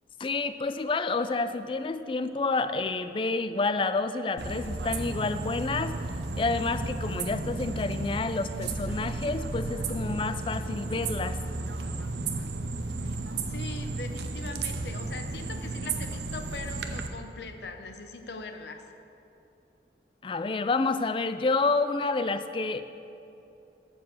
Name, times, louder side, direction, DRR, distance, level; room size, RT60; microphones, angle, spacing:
voice 1, 0.2-6.0 6.4-11.4 20.2-22.8, left 3 dB, 30° left, 11 dB, 0.3 m, -29 dB
sound 1, 4.4-17.1, right 3 dB, 75° right, 0.7 m, -33 dB
voice 2, 13.5-18.8, left 3 dB, 75° left, 6 dB, 0.8 m, -41 dB
12.0 x 4.6 x 7.3 m, 2.8 s
head